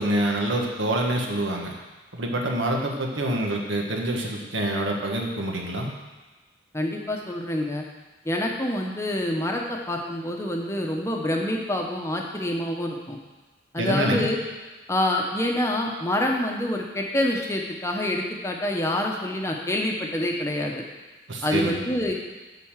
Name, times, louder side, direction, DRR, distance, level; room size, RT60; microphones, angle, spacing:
voice 1, 0.0-1.7 2.1-5.9 13.8-14.3 21.3-21.8, right 1 dB, 85° right, 1 dB, 1.5 m, -26 dB
voice 2, 6.7-7.8 8.2-13.2 13.7-14.4 14.9-20.8 21.4-22.1, left 1 dB, 15° left, 0 dB, 0.9 m, -26 dB
9.5 x 4.2 x 7.3 m, 1.2 s
head